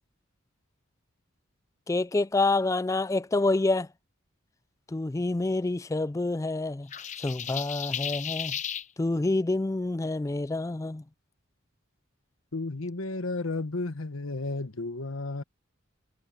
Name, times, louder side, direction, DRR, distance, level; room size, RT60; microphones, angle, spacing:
voice 1, 1.9-3.9 4.9-6.9 7.2-8.6 9.0-11.0, left 2 dB, 15° left, 0.3 m, -27 dB
sound 1, 6.9-8.9, left 9 dB, 35° left, 0.7 m, -34 dB
voice 2, 12.5-15.4, left 2 dB, 80° left, 1.3 m, -33 dB
head